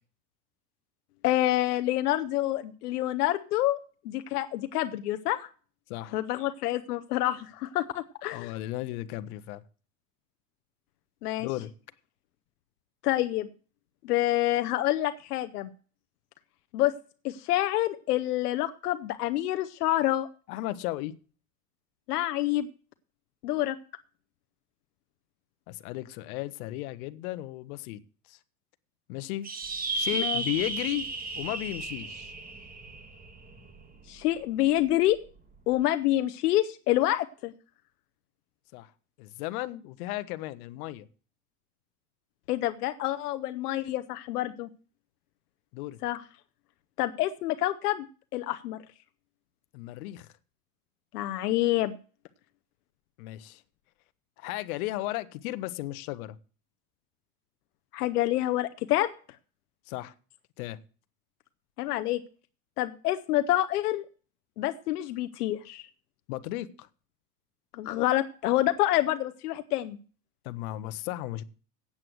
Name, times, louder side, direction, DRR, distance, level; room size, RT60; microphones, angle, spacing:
voice 1, 1.2-3.8 4.0-5.5 6.1-8.5 11.2-11.5 13.0-13.5 14.0-15.7 16.7-16.9 17.2-20.3 22.1-22.7 23.4-23.8 30.1-30.4 34.1-35.2 35.7-37.5 42.5-44.7 46.0-46.2 47.0-48.1 48.3-48.8 51.1-52.0 57.9-59.1 61.8-62.2 62.8-64.0 64.6-65.9 67.7-70.0, left 15 dB, 90° left, 0.8 m, -27 dB
voice 2, 8.3-9.6 11.4-11.7 20.5-21.1 25.7-28.0 28.3-28.4 29.1-29.5 29.9-31.1 31.4-32.3 38.7-38.9 39.2-41.1 45.7-46.0 49.7-50.3 53.2-53.6 54.4-56.4 59.9-60.1 60.6-60.8 66.3-66.9 70.4-71.4, left 16 dB, 70° left, 1.1 m, -35 dB
sound 1, 29.4-34.2, right 3 dB, 20° right, 1.8 m, -34 dB
8.7 x 7.7 x 7.8 m
supercardioid pair, 115°, 44 cm